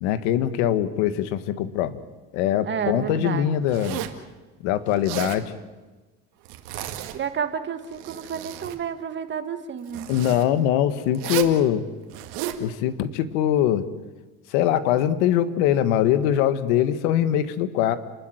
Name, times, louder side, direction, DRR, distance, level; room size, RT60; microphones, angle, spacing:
voice 1, 0.0-2.0 2.3-4.0 4.6-5.4 6.8-6.9 10.1-11.8 12.6-13.9 14.5-18.0, left 11 dB, 90° left, 12 dB, 1.6 m, -22 dB
voice 2, 2.6-3.5 7.1-10.1, right 7 dB, 35° right, 8 dB, 1.9 m, -30 dB
Zipper (clothing), 3.7-4.2 4.9-5.4 6.4-7.3 7.8-8.8 9.9-10.4 11.1-11.6 12.1-12.6, right 13 dB, 80° right, 2.2 m, -33 dB
30.0 x 12.5 x 9.3 m, 1.2 s
cardioid pair, 130°, 34 cm